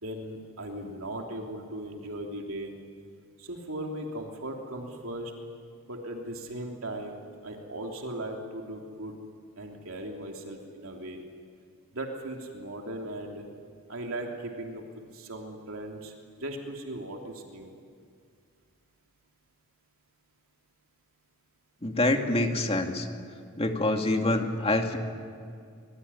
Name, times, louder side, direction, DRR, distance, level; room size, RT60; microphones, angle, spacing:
voice 1, 0.0-2.7 3.4-5.3 5.9-7.2 7.4-9.1 9.6-11.2 11.9-13.4 13.9-14.8 15.1-16.1 16.4-17.7, right 1 dB, 65° right, 1 dB, 3.1 m, -38 dB
voice 2, 21.8-23.1 23.6-25.0, left 2 dB, 25° left, 4 dB, 2.3 m, -26 dB
25.5 x 23.0 x 9.9 m, 2.2 s
head